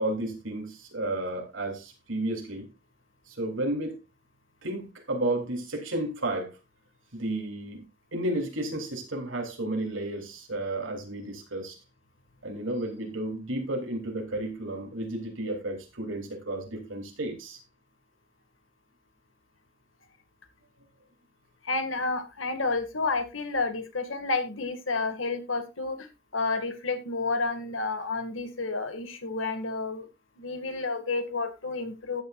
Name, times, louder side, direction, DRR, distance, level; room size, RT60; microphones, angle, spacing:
voice 1, 0.0-2.7 3.3-3.9 4.6-6.5 7.1-11.8 12.4-17.6, right 1 dB, 80° right, 3.4 m, -32 dB
voice 2, 21.6-26.1 26.3-30.1 30.4-32.2, left 3 dB, 85° left, 2.1 m, -30 dB
14.0 x 9.4 x 2.5 m
head